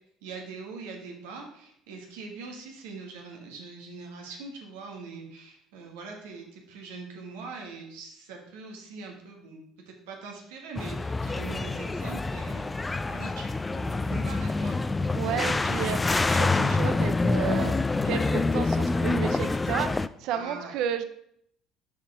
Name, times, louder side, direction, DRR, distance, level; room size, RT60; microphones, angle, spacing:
voice 1, 0.2-9.6 9.8-15.0 20.3-20.7, right 4 dB, 90° right, 1 dB, 1.5 m, -42 dB
sound 1, 10.8-20.1, left 3 dB, 20° left, 0.3 m, -26 dB
voice 2, 15.1-16.0 16.3-17.8 18.0-21.0, right 9 dB, 70° right, 10 dB, 0.5 m, -32 dB
6.3 x 4.9 x 4.8 m, 0.70 s
supercardioid pair, 85°, 0 cm